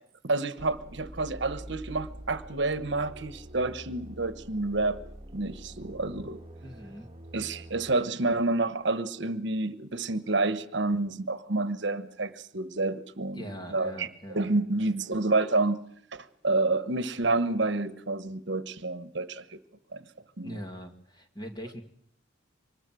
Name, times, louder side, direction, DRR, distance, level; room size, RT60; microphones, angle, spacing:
voice 1, 0.2-5.0 5.3-6.4 7.3-13.4 13.7-15.8 16.1-19.6 19.9-20.0 20.4-20.6, right 2 dB, 60° right, 13 dB, 1.2 m, -29 dB
sound 1, 0.6-7.9, right 1 dB, 25° right, 1.5 m, -46 dB
voice 2, 6.6-7.1 13.3-14.5 20.4-21.8, equal, 20° left, 4 dB, 2.2 m, -41 dB
25.0 x 20.0 x 7.7 m, 0.66 s
head